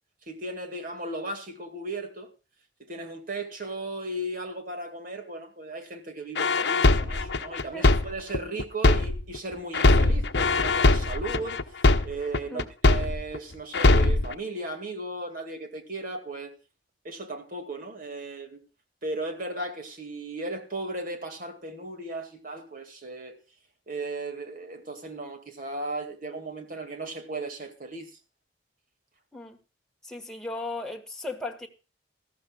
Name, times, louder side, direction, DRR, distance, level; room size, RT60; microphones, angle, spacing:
voice 1, 0.3-2.3 2.8-11.6 12.0-16.5 17.0-18.6 19.0-23.4 23.9-28.1, right 2 dB, 50° right, 2.2 m, -36 dB
sound 1, 6.4-9.4 9.7-13.4 13.7-14.3, left 2 dB, 60° left, 0.8 m, -21 dB
voice 2, 30.0-31.7, left 2 dB, 5° left, 1.5 m, -36 dB
18.5 x 13.5 x 2.4 m
head